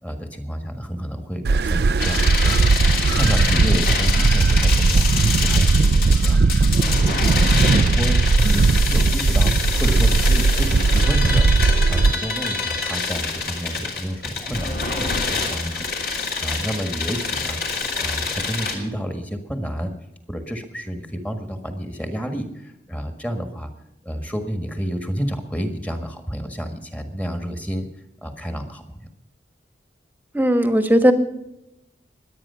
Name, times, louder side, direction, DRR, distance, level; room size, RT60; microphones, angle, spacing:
voice 1, 0.0-2.6 3.1-5.1 5.4-8.2 8.5-11.5 11.9-15.9 16.4-17.6 18.0-19.9 20.3-23.7 24.0-27.9 28.2-29.1, equal, 10° left, 6 dB, 1.6 m, -30 dB
sound 1, 1.4-12.1, right 4 dB, 60° right, 0.4 m, -18 dB
sound 2, 2.0-18.7, left 4 dB, 55° left, 3.0 m, -26 dB
voice 2, 30.3-31.1, equal, 10° right, 8 dB, 1.2 m, -17 dB
22.5 x 9.0 x 5.6 m, 0.87 s
head